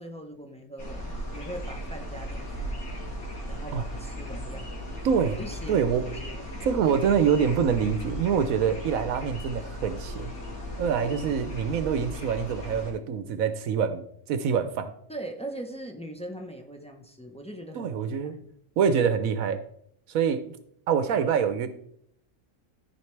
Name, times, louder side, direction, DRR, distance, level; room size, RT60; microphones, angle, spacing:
voice 1, 0.0-2.8 3.5-5.0 5.4-5.8 6.2-6.5 15.1-17.9 18.3-18.4, right 1 dB, 5° left, 2 dB, 0.7 m, -40 dB
sound 1, 0.8-12.9, equal, 85° left, 2.7 m, -37 dB
voice 2, 5.0-5.4 5.7-6.1 6.6-10.3 10.8-14.9 17.7-18.4 18.8-19.6 20.1-20.5 20.9-21.7, right 7 dB, 75° right, 10 dB, 1.1 m, -25 dB
14.0 x 5.0 x 3.3 m, 0.69 s
omnidirectional pair, 1.5 m